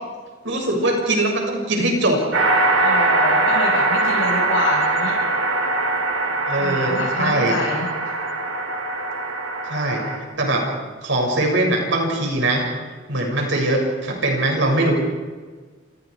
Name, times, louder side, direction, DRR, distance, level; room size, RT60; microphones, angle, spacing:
voice 1, 0.4-2.2 6.5-7.6 9.7-10.7 11.0-12.7 13.1-14.9, right 1 dB, 65° right, 1 dB, 7.3 m, -21 dB
sound 1, 2.3-10.2, right 2 dB, 90° right, 3.9 m, -21 dB
voice 2, 2.8-5.1 6.6-8.1, left 2 dB, 70° left, -7 dB, 7.0 m, -27 dB
28.5 x 28.5 x 5.1 m, 1.5 s
head